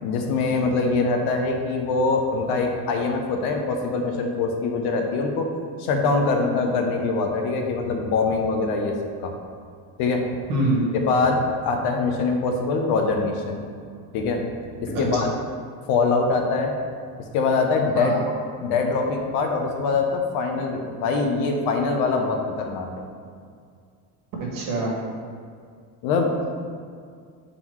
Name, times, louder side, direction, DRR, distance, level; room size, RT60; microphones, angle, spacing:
voice 1, 0.0-5.5 5.8-9.0 9.2-9.3 10.0-10.4 10.9-13.6 14.1-14.4 14.8-15.3 15.9-16.7 17.3-18.2 18.6-22.9 26.0-26.3, left 4 dB, 60° left, 3 dB, 0.8 m, -23 dB
voice 2, 10.5-10.9 14.9-15.1 17.9-18.2 24.4-24.9, right 1 dB, 50° right, -3 dB, 1.6 m, -24 dB
5.9 x 3.9 x 4.6 m, 2.1 s
cardioid pair, 170°, 43 cm